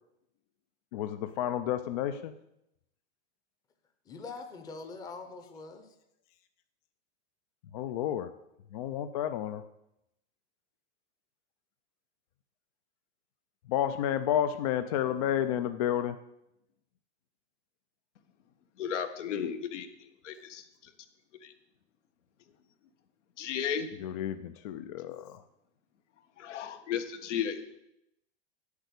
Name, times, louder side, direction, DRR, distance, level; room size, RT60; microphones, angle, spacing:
voice 1, 0.9-2.3 7.7-8.3 8.7-9.6 13.6-16.2 24.0-25.4, left 10 dB, 35° left, 10 dB, 0.4 m, -31 dB
voice 2, 4.1-5.9, left 4 dB, 10° left, 6 dB, 0.8 m, -43 dB
voice 3, 18.8-20.9 21.3-21.5 23.4-23.9 26.4-27.7, left 8 dB, 80° left, 9 dB, 1.5 m, -35 dB
9.1 x 8.2 x 8.1 m, 0.83 s
supercardioid pair, 165°, 36 cm